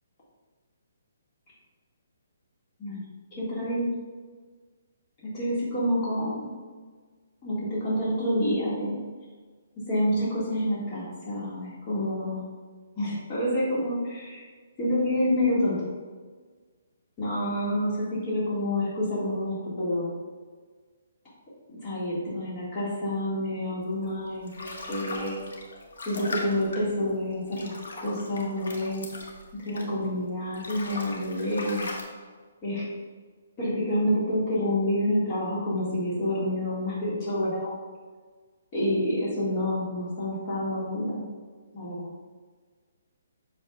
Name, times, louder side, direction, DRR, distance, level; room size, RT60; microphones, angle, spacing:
voice 1, 3.4-3.9 5.2-6.5 7.4-9.0 9.8-12.4 12.9-14.4 14.8-15.9 17.2-20.1 21.7-25.4 26.0-29.0 29.6-31.9 32.6-32.9 33.6-37.8 38.7-41.3 41.7-42.1, left 1 dB, 20° left, -8 dB, 1.7 m, -28 dB
sound 1, 24.0-30.1 30.4-32.0, left 2 dB, 90° left, 1.4 m, -39 dB
8.0 x 6.2 x 2.3 m, 1.5 s
hypercardioid pair, 175°, 0 cm